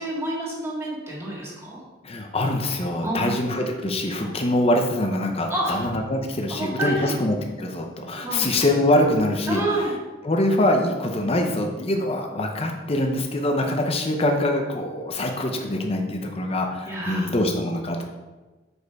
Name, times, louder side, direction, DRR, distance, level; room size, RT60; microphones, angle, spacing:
voice 1, 0.0-1.8 3.0-3.4 4.2-4.3 5.5-5.8 6.5-7.1 8.2-8.5 9.5-9.9 16.9-17.3, right 1 dB, 15° right, -5 dB, 1.9 m, -28 dB
voice 2, 2.0-9.6 10.2-18.0, left 1 dB, 30° left, 3 dB, 0.7 m, -24 dB
6.4 x 5.3 x 4.7 m, 1.2 s
head